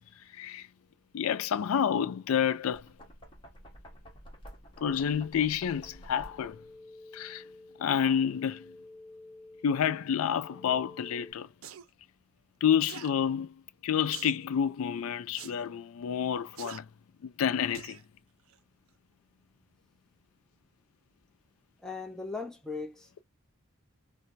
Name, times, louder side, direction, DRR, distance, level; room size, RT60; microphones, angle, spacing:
voice 1, 0.3-0.7 1.1-2.9 4.8-6.6 7.1-7.4 7.8-8.7 9.6-11.5 12.6-16.9 17.2-18.0, left 8 dB, 80° left, 0.4 m, -29 dB
Knock, 2.6-6.7, equal, 25° left, 1.1 m, -51 dB
sound 1, 5.8-11.3, left 2 dB, 15° right, 1.1 m, -52 dB
sound 2, 11.6-11.9 12.9-13.1 14.1-14.4 15.4-15.6 16.6-16.8 17.7-18.0 18.5-18.6, right 9 dB, 70° right, 0.5 m, -44 dB
voice 2, 21.8-23.2, left 4 dB, 5° left, 0.6 m, -38 dB
4.5 x 2.1 x 2.5 m
head